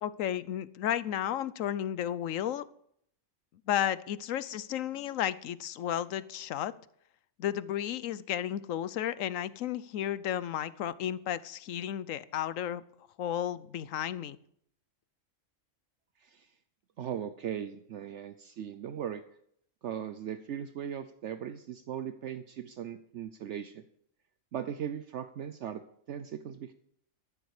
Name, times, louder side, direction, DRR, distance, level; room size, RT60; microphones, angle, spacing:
voice 1, 0.0-2.7 3.7-6.7 7.4-12.8 13.2-14.4, left 11 dB, 85° left, 17 dB, 1.1 m, -33 dB
voice 2, 16.2-16.5 17.0-19.2 19.8-23.8 24.5-25.8 26.1-26.7, right 9 dB, 65° right, 10 dB, 1.0 m, -38 dB
13.5 x 11.5 x 4.9 m, 0.68 s
omnidirectional pair, 1.3 m